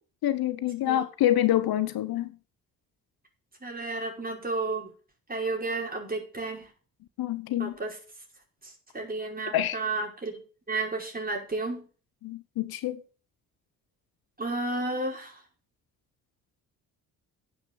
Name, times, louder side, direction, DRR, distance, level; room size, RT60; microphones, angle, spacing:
voice 1, 0.2-2.4 7.2-7.7 9.5-9.8 12.2-13.0, left 12 dB, 65° left, 0.9 m, -26 dB
voice 2, 3.6-4.9 5.3-6.7 7.6-8.0 8.6-10.4 10.7-11.9 14.4-15.4, right 3 dB, 20° right, 5.3 m, -32 dB
9.8 x 6.9 x 7.6 m
supercardioid pair, 65°, 39 cm